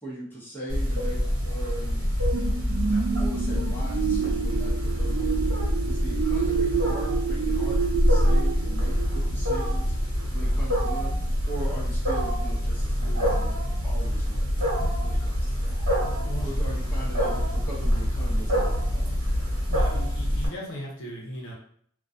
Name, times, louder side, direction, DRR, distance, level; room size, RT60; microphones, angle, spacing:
voice 1, 0.0-2.1 2.9-11.2 11.4-14.4 15.0-15.8 16.4-19.1, right 1 dB, 10° left, -8 dB, 0.8 m, -40 dB
Wild animals, 0.7-20.5, equal, 75° right, 1.0 m, -25 dB
sound 1, 2.3-9.7 10.2-10.3, right 7 dB, 55° right, 0.3 m, -29 dB
voice 2, 16.2-16.6 19.7-21.5, equal, 60° left, -2 dB, 0.7 m, -37 dB
2.2 x 2.2 x 2.5 m, 0.62 s
head